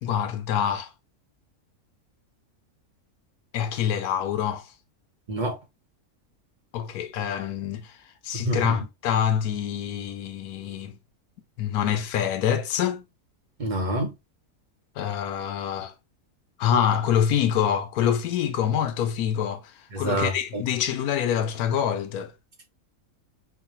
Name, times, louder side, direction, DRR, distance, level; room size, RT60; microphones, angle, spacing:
voice 1, 0.0-0.9 3.5-4.6 6.7-7.9 8.2-11.0 11.6-13.0 15.0-15.9 16.6-19.6 20.0-22.3, left 9 dB, 80° left, 1.1 m, -26 dB
voice 2, 8.5-8.8 13.6-14.1 19.9-20.6, right 1 dB, 40° right, 0.8 m, -27 dB
4.7 x 2.2 x 2.7 m
omnidirectional pair, 1.6 m